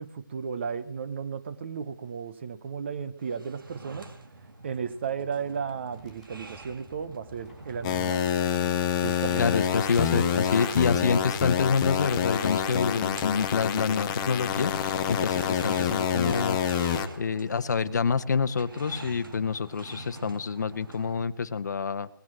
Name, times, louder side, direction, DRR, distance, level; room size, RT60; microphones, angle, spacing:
voice 1, 0.0-4.1 4.6-8.2 9.0-9.5, right 6 dB, 30° right, 13 dB, 0.8 m, -34 dB
sound 1, 3.2-21.3, right 2 dB, 70° right, 2.6 m, -46 dB
Tearing, 6.0-13.7, left 2 dB, 5° right, 4.7 m, -51 dB
sound 2, 7.8-17.1, left 8 dB, 15° left, 0.7 m, -27 dB
voice 2, 9.4-16.6 17.2-22.1, left 5 dB, 50° left, 12 dB, 0.9 m, -27 dB
18.5 x 9.4 x 7.5 m, 0.72 s
hypercardioid pair, 165°, 12 cm